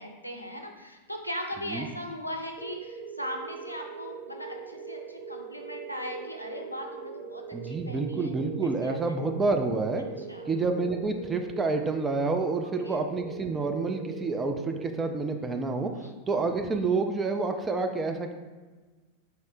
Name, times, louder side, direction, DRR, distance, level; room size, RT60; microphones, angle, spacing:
voice 1, 0.0-8.3 8.8-9.2 10.3-10.5 12.8-13.0 15.9-16.1, equal, 90° left, 2 dB, 0.4 m, -39 dB
sound 1, 2.6-15.7, right 5 dB, 35° right, 1.0 m, -42 dB
voice 2, 7.5-10.0 10.5-16.0 16.3-18.3, right 3 dB, 15° right, 5 dB, 0.3 m, -28 dB
4.0 x 2.0 x 3.7 m, 1.3 s
figure-of-eight pair, 90°, 0 cm